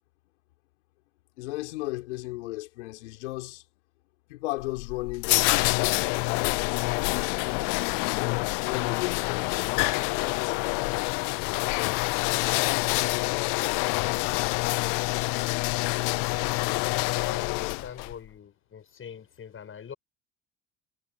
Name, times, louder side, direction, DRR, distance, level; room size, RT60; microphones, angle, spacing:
voice 1, 1.4-3.6 4.3-6.7 8.0-11.4, left 19 dB, 85° left, 4.9 m, -36 dB
sound 1, 4.6-18.1, left 29 dB, 70° left, 0.5 m, -27 dB
voice 2, 16.8-19.9, left 7 dB, 40° left, 7.9 m, -42 dB
supercardioid pair, 85°, 34 cm